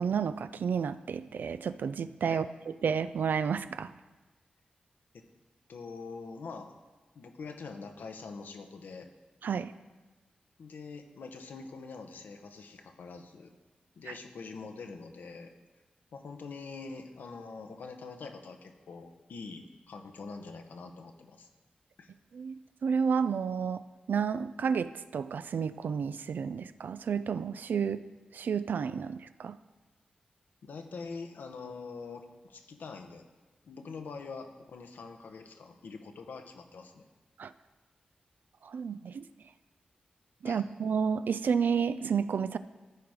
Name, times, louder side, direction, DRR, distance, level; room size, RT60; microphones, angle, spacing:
voice 1, 0.0-3.9 9.4-9.7 14.1-14.2 22.3-28.0 28.3-29.6 37.4-37.5 38.6-39.3 40.4-42.6, right 6 dB, 75° right, 13 dB, 0.3 m, -31 dB
voice 2, 5.7-6.7 7.1-9.1 10.6-13.5 14.0-15.5 16.1-21.5 22.0-22.1 30.6-33.2 33.6-37.0 40.4-40.6, left 4 dB, 85° left, 5 dB, 0.9 m, -44 dB
13.5 x 4.7 x 4.9 m, 1.2 s
cardioid pair, 60°, 3 cm